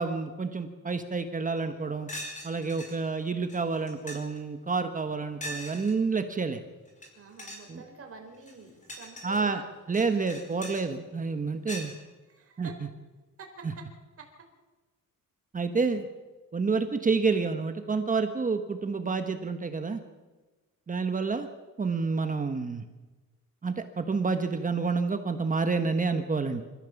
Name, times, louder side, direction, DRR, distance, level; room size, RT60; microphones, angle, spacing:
voice 1, 0.0-2.1 2.4-6.6 7.7-7.8 9.2-9.6 9.9-11.9 12.6-12.7 15.5-16.1 16.5-20.0 20.9-21.5 21.8-22.8 23.6-26.6, right 4 dB, 25° right, 7 dB, 1.2 m, -29 dB
sound 1, 1.6-1.7 2.1-2.9 3.5-3.6 3.9-4.4 5.4-5.9 6.9-7.1 7.4-7.7 8.3-9.4 9.9-10.8 11.7-11.9, equal, 20° left, 5.0 m, -40 dB
voice 2, 7.1-9.9 11.9-12.0 12.3-12.8 13.4-13.8 14.2-14.3, right 4 dB, 40° right, 3 dB, 4.4 m, -48 dB
26.5 x 15.0 x 7.2 m, 1.2 s
cardioid pair, 150°, 34 cm